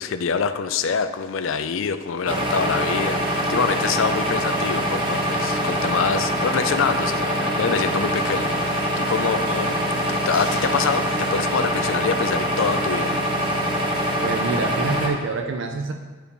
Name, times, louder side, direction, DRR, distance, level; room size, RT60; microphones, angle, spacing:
voice 1, 0.0-9.8 10.1-13.2, left 6 dB, 70° left, 11 dB, 0.4 m, -25 dB
sound 1, 2.2-15.1, equal, 25° right, 0.9 m, -24 dB
voice 2, 14.2-15.9, right 4 dB, 60° right, 4 dB, 0.4 m, -26 dB
10.0 x 4.7 x 3.4 m, 1.4 s
head